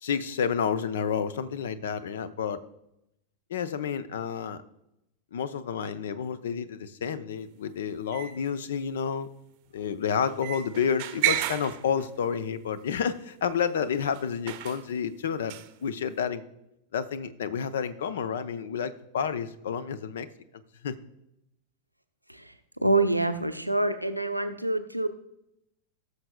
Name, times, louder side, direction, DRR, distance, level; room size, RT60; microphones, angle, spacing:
voice 1, 0.0-2.6 3.5-4.6 5.3-9.3 9.7-15.5 15.8-16.4 16.9-20.3 20.8-20.9, left 7 dB, 60° left, 15 dB, 0.6 m, -30 dB
sound 1, 8.1-8.4 10.2-12.2 12.9-13.0 14.1-14.2 14.5-14.8 15.5-15.7, right 15 dB, 45° right, 0.7 m, -31 dB
voice 2, 22.8-25.1, right 2 dB, 90° right, 7 dB, 0.7 m, -26 dB
18.5 x 6.5 x 2.2 m, 0.83 s
figure-of-eight pair, 90°, 0 cm